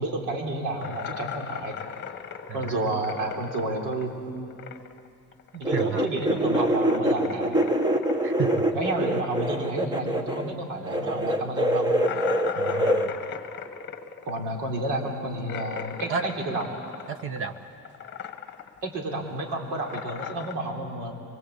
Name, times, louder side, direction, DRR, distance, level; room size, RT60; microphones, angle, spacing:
voice 1, 0.0-1.8 2.5-4.5 5.6-7.6 8.7-11.9 14.3-16.7 18.8-21.1, right 2 dB, 90° right, 1 dB, 3.7 m, -31 dB
sound 1, 0.8-5.1 5.3-10.4 10.6-10.7 11.1-11.2 12.0-17.6 17.8-18.8 19.1-20.5, left 7 dB, 35° left, 1.2 m, -38 dB
voice 2, 2.5-3.0 5.5-6.1 8.2-8.7 12.6-13.1 16.1-16.2 17.1-17.5, right 6 dB, 45° right, 9 dB, 1.4 m, -32 dB
sound 2, 5.6-10.5 10.8-13.1, right 1 dB, 15° right, 1.0 m, -25 dB
24.5 x 22.5 x 8.5 m, 2.4 s
cardioid pair, 170°, 30 cm